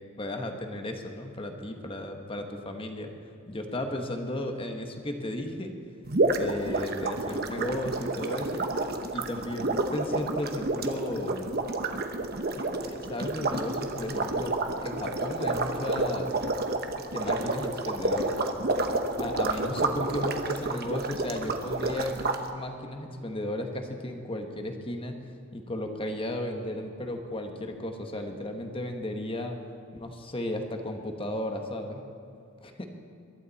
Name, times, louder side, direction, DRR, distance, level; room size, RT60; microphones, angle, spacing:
voice 1, 0.2-3.1 3.5-5.7 6.2-8.6 9.1-11.6 12.6-14.5 14.8-16.3 16.9-18.4 19.2-22.2 22.5-25.2 25.5-29.6 29.9-32.0 32.6-32.9, left 1 dB, 25° left, 4 dB, 1.3 m, -34 dB
sound 1, 6.1-22.4, right 2 dB, 50° right, 1.0 m, -30 dB
sound 2, 11.1-24.9, right 1 dB, 90° right, 3.7 m, -51 dB
22.5 x 12.0 x 4.2 m, 2.6 s
head